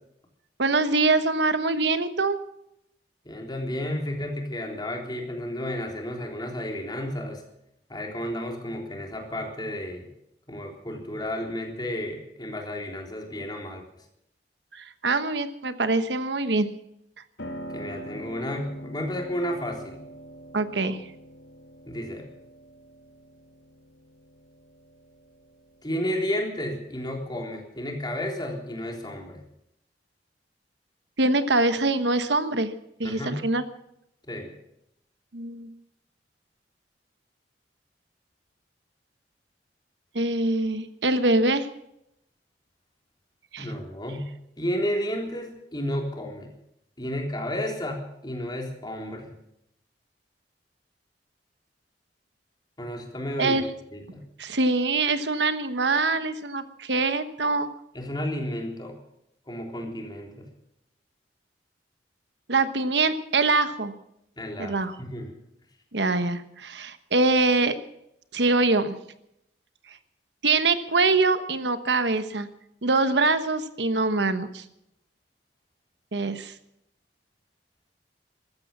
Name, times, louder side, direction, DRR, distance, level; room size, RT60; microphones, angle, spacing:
voice 1, 0.6-2.4 14.7-16.7 20.5-21.0 31.2-32.7 33.0-33.6 35.3-35.7 40.1-41.7 43.5-43.7 53.4-53.7 54.4-57.7 62.5-63.9 64.6-64.9 65.9-67.7 68.3-68.9 69.9-70.0 70.4-72.5 72.8-74.6 76.1-76.5, right 3 dB, 80° right, 11 dB, 1.2 m, -24 dB
voice 2, 3.3-7.4 7.9-10.1 10.5-13.8 17.7-20.0 21.9-22.3 25.8-29.4 33.0-33.5 34.3-34.5 43.6-44.3 44.6-46.5 47.0-49.3 52.8-53.6 53.9-54.2 57.9-59.0 59.5-60.5 64.4-65.4, left 1 dB, 25° left, 1 dB, 3.7 m, -32 dB
Piano, 17.4-27.3, equal, 80° left, 2.0 m, -44 dB
15.0 x 13.5 x 7.3 m, 0.80 s
head